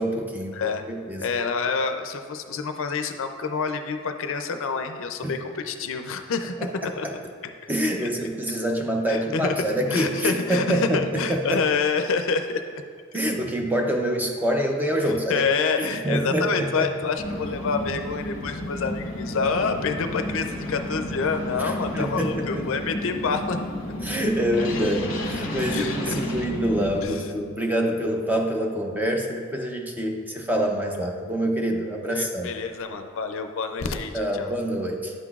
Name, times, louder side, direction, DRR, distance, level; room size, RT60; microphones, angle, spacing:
voice 1, 0.0-1.3 5.2-5.3 6.6-6.7 7.0-7.1 7.7-11.6 13.1-15.4 15.8-16.9 21.6-22.7 24.0-32.5 34.1-35.1, equal, 10° right, 2 dB, 0.5 m, -26 dB
voice 2, 0.5-0.8 1.2-6.5 6.8-7.1 8.0-8.1 9.1-9.5 9.9-12.8 15.0-23.6 23.8-23.9 25.7-26.2 27.0-27.3 32.1-34.5, left 5 dB, 65° left, 7 dB, 0.4 m, -27 dB
sound 1, 17.2-27.0, left 1 dB, 40° left, 1.0 m, -31 dB
9.9 x 5.9 x 2.4 m, 2.1 s
head